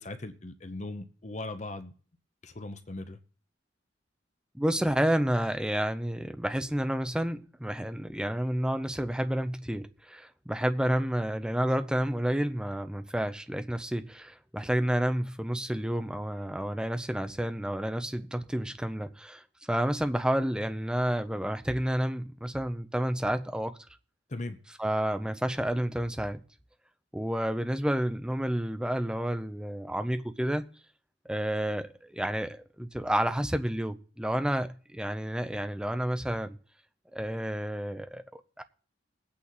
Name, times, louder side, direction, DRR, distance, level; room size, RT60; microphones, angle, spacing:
voice 1, 0.0-1.9 2.4-3.2 24.3-24.6, left 2 dB, 40° left, 0.8 m, -39 dB
voice 2, 4.5-23.8 24.8-26.4 27.1-30.6 31.3-36.6 37.1-38.6, equal, 5° right, 0.6 m, -30 dB
20.0 x 8.6 x 4.1 m
head